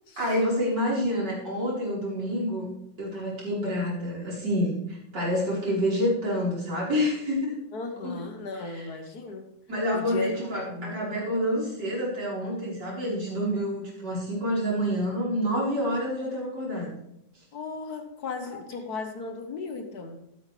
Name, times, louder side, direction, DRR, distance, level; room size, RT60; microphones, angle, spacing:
voice 1, 0.2-2.7 3.0-7.6 8.0-8.1 8.6-8.8 9.7-17.0, equal, 70° right, -6 dB, 5.2 m, -28 dB
voice 2, 7.7-9.5 9.9-10.3 10.7-11.0 17.5-20.2, left 4 dB, 60° left, 6 dB, 1.8 m, -36 dB
13.0 x 12.5 x 3.4 m, 0.79 s
omnidirectional pair, 1.9 m